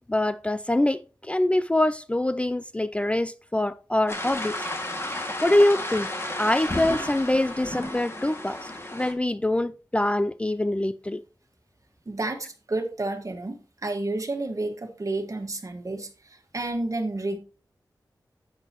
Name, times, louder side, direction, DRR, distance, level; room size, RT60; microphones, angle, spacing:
voice 1, 0.1-4.5 5.1-6.1 6.4-11.2, left 1 dB, 15° left, 0.4 m, -24 dB
sound 1, 4.1-9.1, left 1 dB, 35° left, 2.0 m, -32 dB
voice 2, 12.1-17.4, right 2 dB, 45° right, 1.6 m, -30 dB
10.5 x 8.0 x 2.9 m
wide cardioid pair, 80°, 8 cm